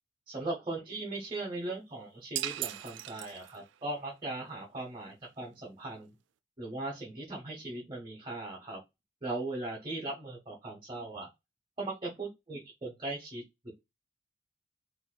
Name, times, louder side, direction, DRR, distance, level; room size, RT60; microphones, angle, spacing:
voice 1, 0.3-6.1 6.6-8.8 9.2-11.3 11.8-13.7, right 2 dB, 25° right, -1 dB, 0.9 m, -39 dB
sound 1, 2.4-3.8, right 14 dB, 70° right, 0.4 m, -38 dB
4.0 x 2.6 x 2.2 m, 0.21 s
head